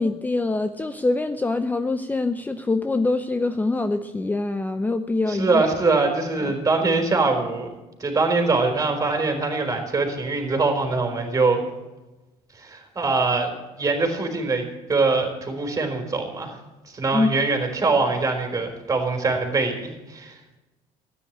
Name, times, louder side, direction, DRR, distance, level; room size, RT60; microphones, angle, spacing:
voice 1, 0.0-5.6 6.4-6.5 17.1-17.3, left 2 dB, 15° left, 10 dB, 0.7 m, -24 dB
voice 2, 5.3-7.7 8.0-11.6 12.5-16.6 16.9-20.3, right 3 dB, 25° right, 4 dB, 4.1 m, -23 dB
13.0 x 10.0 x 8.7 m, 1.1 s
supercardioid pair, 95°, 13 cm